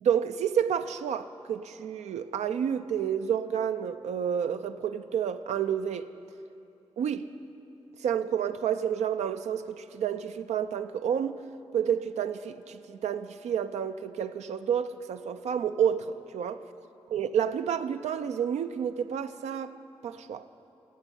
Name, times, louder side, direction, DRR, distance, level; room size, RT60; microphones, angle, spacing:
voice 1, 0.0-6.1 7.0-7.2 8.0-11.4 11.7-16.6 17.1-19.7 20.0-20.4, right 8 dB, 85° right, 0.4 m, -30 dB
10.0 x 8.3 x 8.2 m
supercardioid pair, 45°, 11 cm